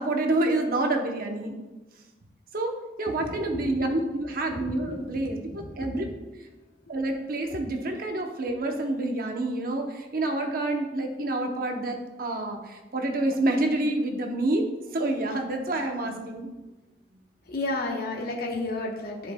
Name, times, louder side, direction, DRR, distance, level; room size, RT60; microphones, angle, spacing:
voice 1, 0.0-1.6 2.5-6.1 6.9-14.6 14.9-16.5, right 2 dB, 55° right, 4 dB, 0.7 m, -28 dB
voice 2, 3.1-3.7 4.5-5.2 5.5-6.1 6.9-7.0 7.5-7.6 17.5-19.3, left 2 dB, 60° left, -1 dB, 1.0 m, -33 dB
10.5 x 5.2 x 2.2 m, 1.1 s
head